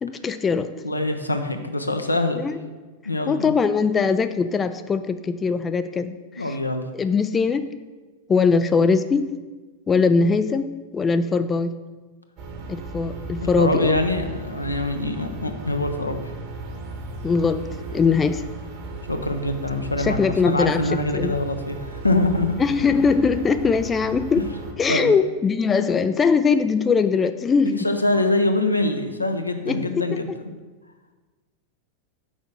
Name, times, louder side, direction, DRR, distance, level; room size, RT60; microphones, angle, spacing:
voice 1, 0.0-0.7 2.4-2.6 3.3-6.6 6.9-7.7 8.3-9.3 9.9-11.7 12.7-14.0 17.2-17.6 17.9-18.5 20.0-21.4 22.6-24.4 24.8-27.9 29.7-30.4, left 5 dB, 20° left, 10 dB, 0.3 m, -21 dB
voice 2, 0.8-2.5 3.0-3.5 6.4-6.8 13.4-16.3 19.1-22.6 24.4-24.5 24.9-25.2 27.6-30.3, left 2 dB, 85° left, 6 dB, 0.7 m, -24 dB
sound 1, 12.4-24.7, right 2 dB, 40° right, 1.5 m, -35 dB
6.3 x 5.1 x 6.0 m, 1.3 s
figure-of-eight pair, 90°, 0 cm